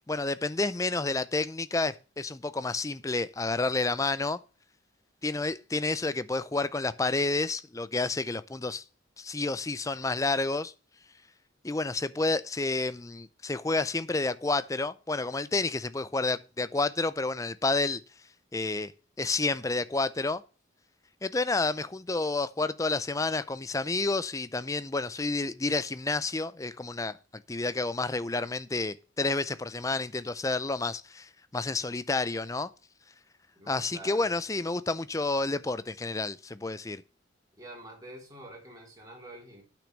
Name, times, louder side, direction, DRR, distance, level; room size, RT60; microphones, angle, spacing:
voice 1, 0.1-4.4 5.2-8.8 9.2-10.7 11.6-18.0 18.5-18.9 19.2-20.4 21.2-27.2 27.5-32.7 33.7-37.0, left 3 dB, 15° left, 0.4 m, -30 dB
voice 2, 33.6-34.3 37.6-39.6, right 1 dB, 20° right, 3.8 m, -47 dB
8.5 x 6.2 x 7.2 m
head